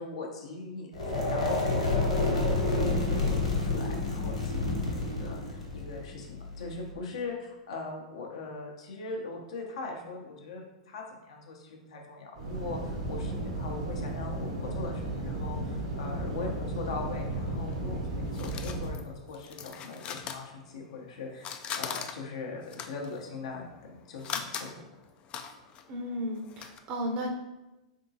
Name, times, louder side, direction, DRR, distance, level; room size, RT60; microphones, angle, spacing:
voice 1, 0.0-24.8, left 3 dB, 65° left, 0 dB, 0.8 m, -40 dB
sound 1, 0.9-6.9, left 2 dB, 90° left, 1.0 m, -29 dB
sound 2, 12.3-18.9, right 1 dB, 65° right, 1.0 m, -34 dB
sound 3, 17.7-21.1 21.3-26.8, left 7 dB, 35° left, 0.3 m, -40 dB
voice 2, 25.9-27.3, equal, 40° right, 2 dB, 0.7 m, -34 dB
3.6 x 3.5 x 2.7 m, 1.0 s
hypercardioid pair, 100°, 3 cm